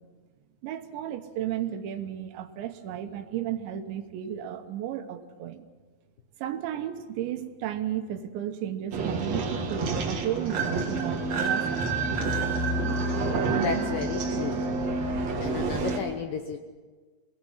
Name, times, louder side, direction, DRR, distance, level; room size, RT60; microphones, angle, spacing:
voice 1, 0.6-5.7 6.4-11.9, right 10 dB, 80° right, 8 dB, 3.4 m, -34 dB
sound 1, 8.9-16.0, right 3 dB, 50° right, 2.2 m, -28 dB
voice 2, 13.3-14.7 15.4-16.6, left 6 dB, 75° left, 5 dB, 2.1 m, -33 dB
27.0 x 19.0 x 5.7 m, 1.4 s
omnidirectional pair, 5.2 m